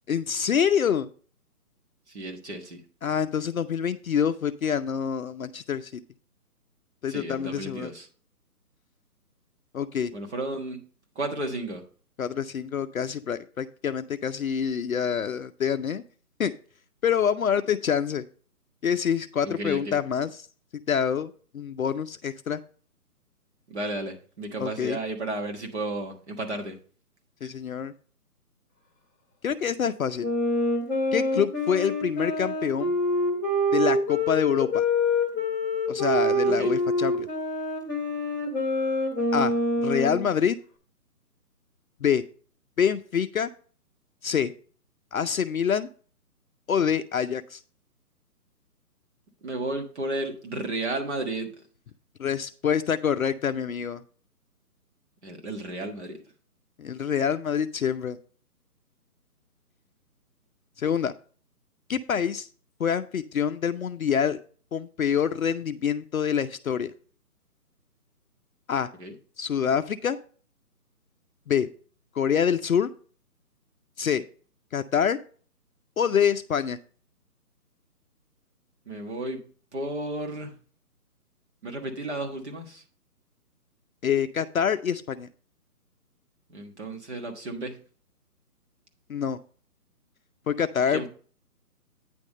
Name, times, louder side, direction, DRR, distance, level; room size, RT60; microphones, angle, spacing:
voice 1, 0.1-1.1 3.0-6.0 7.0-7.9 9.7-10.1 12.2-16.0 16.4-16.5 17.0-18.2 18.8-20.3 20.9-22.6 24.6-25.0 27.4-27.9 29.4-30.3 31.1-33.0 33.7-34.8 35.9-37.3 39.3-40.6 42.0-42.2 42.8-43.5 44.2-44.5 45.1-45.9 46.7-47.6 52.2-54.0 56.8-58.2 60.8-61.1 61.9-62.5 62.8-64.4 64.7-66.9 68.7-68.9 69.4-70.2 71.5-71.7 72.2-72.9 74.0-74.2 74.7-75.2 76.0-76.8 84.0-85.3 89.1-89.4 90.5-91.1, left 8 dB, 60° left, 9 dB, 0.5 m, -26 dB
voice 2, 2.1-2.8 7.1-8.1 10.1-10.8 11.1-11.8 19.4-20.0 23.7-26.8 36.5-36.7 49.4-51.5 55.2-56.2 69.0-69.1 78.9-79.4 79.7-80.5 81.6-82.8 86.5-87.7 90.9-91.1, right 2 dB, 45° right, 3 dB, 1.5 m, -33 dB
Wind instrument woodwind instrument, 30.2-40.2, left 1 dB, 15° right, 1.3 m, -26 dB
9.2 x 3.5 x 6.3 m, 0.41 s
hypercardioid pair, 175°, 47 cm